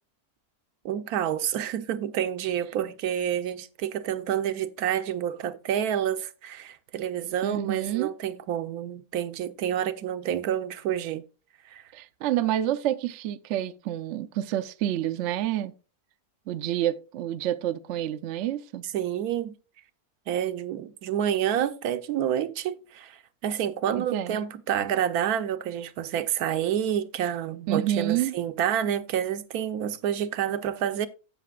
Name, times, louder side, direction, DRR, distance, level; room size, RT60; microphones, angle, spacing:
voice 1, 0.8-11.2 11.7-11.8 18.8-19.5 20.3-31.1, right 10 dB, 85° right, 1.2 m, -28 dB
voice 2, 7.4-8.1 11.9-15.7 16.5-18.8 23.9-24.4 27.7-28.3, right 12 dB, 65° right, 0.8 m, -28 dB
15.5 x 5.8 x 2.3 m
omnidirectional pair, 1.5 m